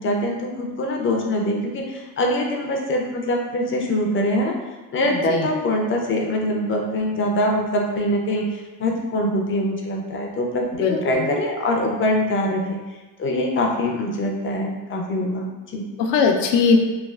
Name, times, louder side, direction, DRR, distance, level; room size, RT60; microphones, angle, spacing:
voice 1, 0.0-4.6 4.9-12.8 13.2-15.8, left 1 dB, 30° left, 1 dB, 0.4 m, -23 dB
voice 2, 5.1-5.5 10.7-11.3 16.0-16.8, left 5 dB, 90° left, 3 dB, 0.5 m, -20 dB
3.2 x 2.3 x 2.3 m, 1.2 s
cardioid pair, 110°, 40 cm